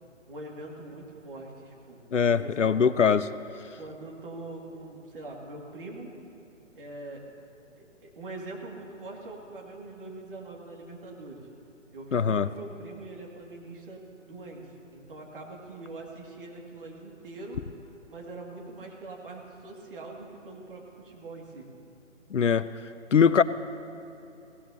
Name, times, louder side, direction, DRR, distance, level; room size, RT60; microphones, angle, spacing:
voice 1, 0.3-2.0 2.3-2.8 3.8-6.1 6.7-7.2 7.8-11.5 11.9-17.6 18.1-21.7, right 2 dB, 45° right, -1 dB, 2.6 m, -43 dB
voice 2, 2.1-3.3 12.1-12.5 22.3-22.7 23.1-23.4, left 6 dB, 70° left, 15 dB, 0.6 m, -22 dB
21.0 x 17.5 x 2.9 m, 2.8 s
figure-of-eight pair, 140°, 38 cm